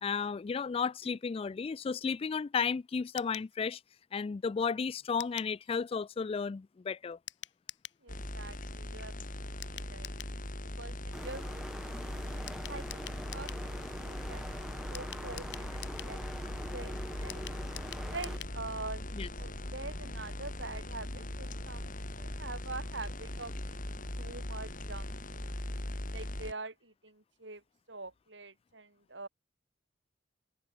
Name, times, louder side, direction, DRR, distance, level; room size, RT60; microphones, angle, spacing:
voice 1, 0.0-3.8 4.1-7.2 19.2-19.3, left 5 dB, 30° left, 0.3 m, -33 dB
sound 1, 3.2-3.5 5.2-5.5 7.3-8.0 9.6-10.4 12.5-13.6 14.9-16.2 17.3-18.6 18.9-19.0 19.2-19.3, left 12 dB, 85° left, 4.7 m, -46 dB
voice 2, 8.0-9.1 9.4-10.2 10.8-11.4 12.3-16.4 16.7-16.9 17.2-17.4 18.1-19.0 19.4-25.5 26.1-27.6 27.9-29.3, right 3 dB, 80° right, 6.7 m, -45 dB
sound 2, 8.1-26.5, left 1 dB, 50° left, 3.7 m, -40 dB
sound 3, 11.1-18.4, equal, ahead, 1.2 m, -45 dB
head